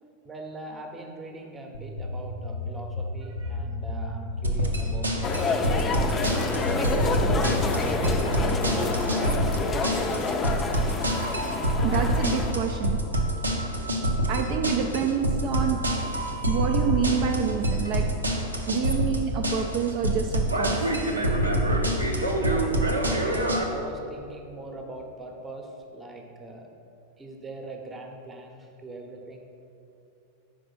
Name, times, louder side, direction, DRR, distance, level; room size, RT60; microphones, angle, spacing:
voice 1, 0.0-6.0 6.6-9.1 22.0-26.7 27.2-29.5, right 2 dB, 15° right, 3 dB, 0.8 m, -42 dB
sound 1, 1.7-9.1, left 2 dB, 70° left, 0.6 m, -34 dB
sound 2, 4.4-23.6, equal, 80° right, 0.7 m, -26 dB
sound 3, 5.2-12.5, left 3 dB, 20° left, 0.5 m, -28 dB
voice 2, 11.8-13.0 13.8-15.8 16.5-18.2 18.7-20.8 21.5-21.6, right 8 dB, 45° right, 3 dB, 0.4 m, -28 dB
5.3 x 4.9 x 6.0 m, 2.7 s
figure-of-eight pair, 90°, 0 cm